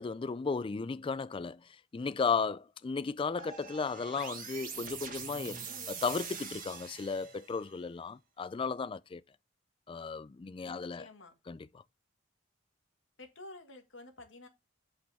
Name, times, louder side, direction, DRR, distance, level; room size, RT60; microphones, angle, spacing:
voice 1, 0.0-1.6 1.9-9.2 9.9-11.1 11.5-11.8, left 5 dB, 25° left, 0.3 m, -35 dB
sound 1, 3.4-7.7, right 6 dB, 45° right, 1.4 m, -43 dB
voice 2, 10.6-11.3 13.2-14.5, left 2 dB, 70° left, 1.6 m, -51 dB
8.4 x 5.2 x 3.4 m
head